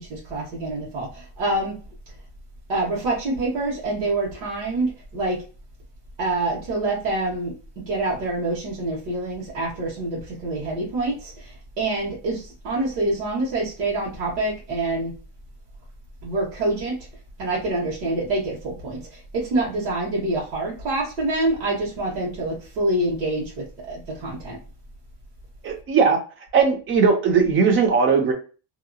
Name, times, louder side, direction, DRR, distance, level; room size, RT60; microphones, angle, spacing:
voice 1, 0.1-1.7 2.7-5.4 6.2-7.5 7.9-15.1 16.2-17.0 17.4-24.6, right 2 dB, 85° right, -5 dB, 1.4 m, -26 dB
voice 2, 25.6-26.2 26.5-28.3, right 5 dB, 30° right, 5 dB, 0.5 m, -18 dB
2.8 x 2.6 x 2.3 m, 0.36 s
cardioid pair, 160°, 46 cm